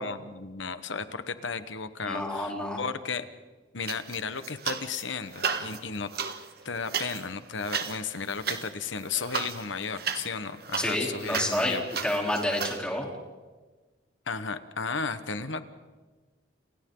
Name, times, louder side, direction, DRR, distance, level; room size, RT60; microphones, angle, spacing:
voice 1, 0.0-3.3 3.7-6.1 6.6-11.8 14.3-15.6, left 5 dB, 75° left, 11 dB, 1.4 m, -34 dB
voice 2, 2.1-2.8 10.8-13.1, left 1 dB, 5° left, -1 dB, 3.7 m, -29 dB
sound 1, 3.8-5.0 5.3-12.8, right 6 dB, 50° right, 1.6 m, -34 dB
30.0 x 29.0 x 4.0 m, 1.3 s
head